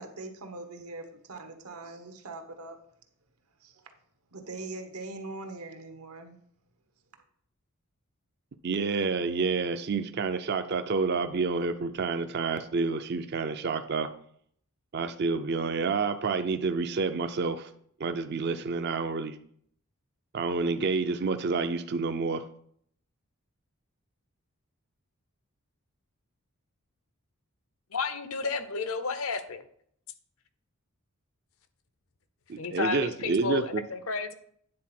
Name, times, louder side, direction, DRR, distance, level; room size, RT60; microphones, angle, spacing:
voice 1, 0.0-2.8 3.6-3.9 4.3-6.4, right 2 dB, 85° right, 6 dB, 1.2 m, -42 dB
voice 2, 8.6-14.1 14.9-17.7 18.0-19.4 20.3-22.4 32.5-33.8, right 4 dB, 50° right, 9 dB, 0.4 m, -29 dB
voice 3, 27.9-29.6 32.6-34.3, left 4 dB, 70° left, 10 dB, 0.7 m, -32 dB
9.5 x 4.1 x 5.9 m, 0.65 s
head